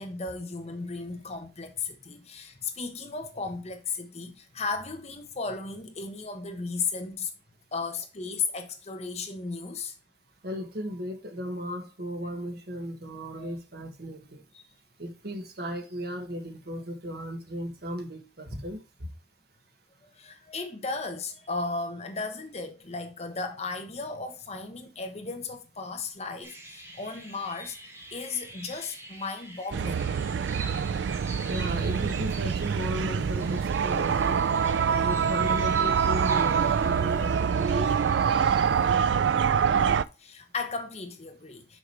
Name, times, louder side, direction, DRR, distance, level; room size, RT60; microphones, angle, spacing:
voice 1, 0.0-7.3 7.7-10.0 13.3-13.5 14.5-14.7 20.0-27.8 28.1-30.0 40.2-41.8, left 4 dB, 35° left, 1.1 m, -35 dB
voice 2, 10.4-14.4 15.0-18.8 31.5-34.4 34.9-38.8, equal, 60° right, 1.5 m, -36 dB
sound 1, 26.4-38.3, right 1 dB, 15° right, 1.5 m, -45 dB
sound 2, 29.7-40.0, right 7 dB, 80° right, 0.4 m, -25 dB
6.3 x 4.9 x 4.6 m
head